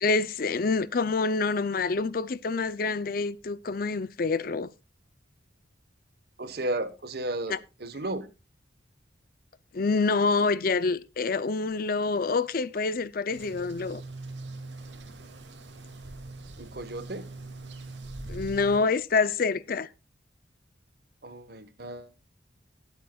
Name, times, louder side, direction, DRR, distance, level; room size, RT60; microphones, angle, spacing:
voice 1, 0.0-4.7 7.5-7.6 9.7-14.0 18.3-19.9, left 4 dB, 50° left, 0.5 m, -27 dB
voice 2, 6.4-8.3 16.6-17.3 21.2-22.1, right 2 dB, 60° right, 1.3 m, -34 dB
sound 1, 13.3-18.8, right 2 dB, 80° right, 2.3 m, -42 dB
20.0 x 8.2 x 2.3 m
head